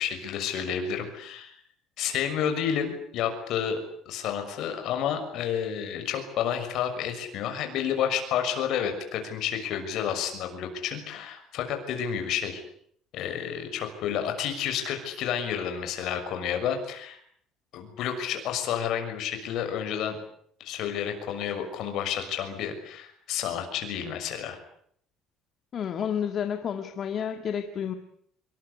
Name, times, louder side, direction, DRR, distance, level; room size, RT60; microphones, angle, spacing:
voice 1, 0.0-1.5 2.0-3.8 4.0-12.6 13.1-17.2 17.7-20.2 20.6-24.6, left 8 dB, 55° left, 6 dB, 6.4 m, -30 dB
voice 2, 25.7-27.9, left 8 dB, 35° left, 6 dB, 1.9 m, -30 dB
26.0 x 23.5 x 8.4 m, 0.66 s
cardioid pair, 170°, 0 cm